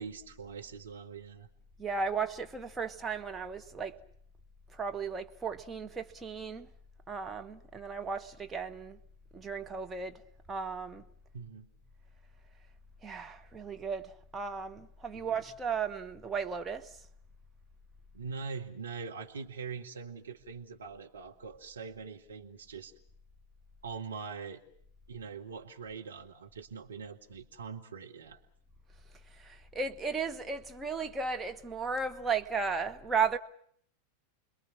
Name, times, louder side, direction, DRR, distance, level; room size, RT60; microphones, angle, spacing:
voice 1, 0.0-1.5 11.3-11.7 15.1-15.3 18.1-22.9 23.8-24.6 25.1-28.4, right 5 dB, 70° right, 2.0 m, -43 dB
voice 2, 1.8-3.9 4.8-6.7 7.1-9.0 9.3-10.1 10.5-11.0 13.0-16.9 29.4-33.4, right 5 dB, 15° right, 1.2 m, -35 dB
29.5 x 21.5 x 5.9 m
figure-of-eight pair, 90°, 0 cm